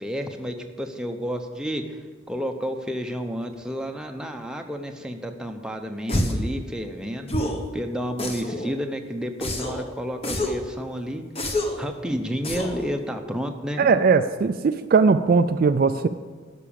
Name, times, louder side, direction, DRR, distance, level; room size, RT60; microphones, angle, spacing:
voice 1, 0.0-2.0 2.3-7.3 7.7-11.2 11.8-13.9, equal, 5° right, 4 dB, 0.7 m, -31 dB
sound 1, 6.1-6.5 7.3-7.7 8.2-8.7 9.4-9.8 10.2-10.7 11.4-11.8 12.4-12.8, left 1 dB, 30° left, 1.1 m, -27 dB
voice 2, 13.8-16.1, right 4 dB, 45° right, 9 dB, 0.4 m, -19 dB
12.0 x 6.1 x 7.0 m, 1.5 s
head